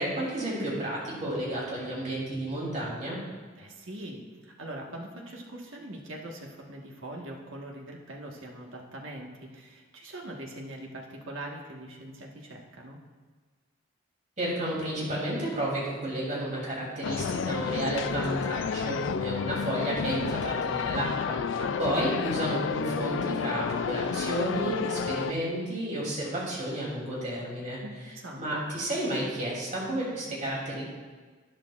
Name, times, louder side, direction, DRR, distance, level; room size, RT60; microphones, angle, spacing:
voice 1, 0.0-3.2 14.4-27.8 28.3-30.8, right 1 dB, 40° right, -5 dB, 3.1 m, -31 dB
voice 2, 3.6-13.0 21.6-21.9 27.8-28.5, right 1 dB, 80° right, 0 dB, 1.5 m, -42 dB
sound 1, 17.0-25.3, left 6 dB, 70° left, 0.3 m, -31 dB
11.5 x 11.0 x 2.5 m, 1.4 s
head